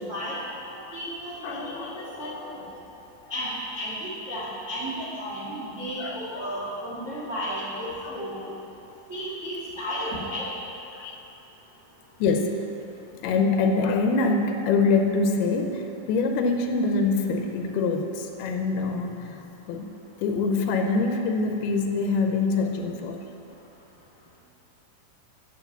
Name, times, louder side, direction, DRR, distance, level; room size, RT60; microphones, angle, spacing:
voice 1, 0.7-2.6 3.3-8.5 9.1-10.5, equal, 60° right, -7 dB, 0.7 m, -33 dB
voice 2, 1.4-2.7 3.2-3.3 4.3-4.4 6.0-7.2 8.0-8.2 10.9-11.2 12.2-12.6 13.2-19.4 19.7-23.2, left 3 dB, 85° left, 4 dB, 2.6 m, -25 dB
9.2 x 6.9 x 7.0 m, 2.9 s
omnidirectional pair, 4.4 m